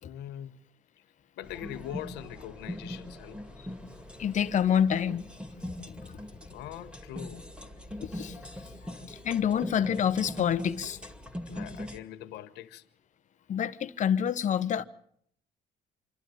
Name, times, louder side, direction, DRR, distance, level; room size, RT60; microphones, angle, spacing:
voice 1, 0.0-0.5 1.4-3.4 6.5-7.4 11.5-12.8, left 12 dB, 90° left, 1.1 m, -42 dB
sound 1, 1.4-12.0, left 1 dB, 5° right, 2.4 m, -41 dB
voice 2, 4.2-5.2 5.6-6.2 8.0-8.4 9.1-11.0 13.5-14.8, left 8 dB, 45° left, 1.1 m, -27 dB
26.5 x 12.0 x 9.2 m
cardioid pair, 110°, 17 cm